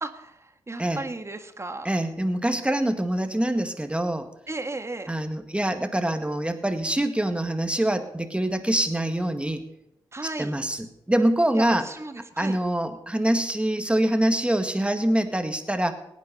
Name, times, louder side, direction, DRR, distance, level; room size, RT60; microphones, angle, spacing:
voice 1, 0.0-1.9 4.5-5.1 10.1-10.5 11.5-12.6, right 2 dB, 30° right, 8 dB, 1.7 m, -35 dB
voice 2, 1.8-4.3 5.1-9.6 10.2-11.9 12.4-15.9, right 1 dB, 10° right, 7 dB, 2.0 m, -25 dB
17.5 x 9.5 x 5.4 m, 0.82 s
supercardioid pair, 40°, 10 cm